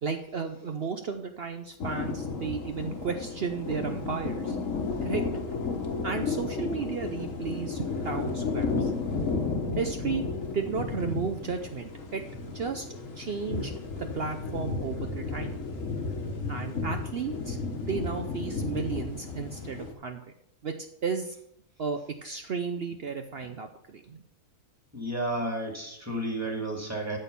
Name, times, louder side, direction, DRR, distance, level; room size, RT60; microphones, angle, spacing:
voice 1, 0.0-4.6 5.0-5.2 6.0-8.9 9.8-10.2 10.5-12.2 12.5-12.9 13.2-13.7 14.0-15.5 16.5-17.6 17.8-20.2 20.6-20.7 21.0-21.4 21.8-24.2, right 5 dB, 55° right, 6 dB, 0.8 m, -33 dB
sound 1, 1.8-19.9, left 4 dB, 65° left, 1.7 m, -33 dB
voice 2, 24.9-27.2, right 1 dB, 10° right, 0 dB, 2.2 m, -32 dB
12.5 x 4.4 x 6.9 m, 0.73 s
omnidirectional pair, 1.5 m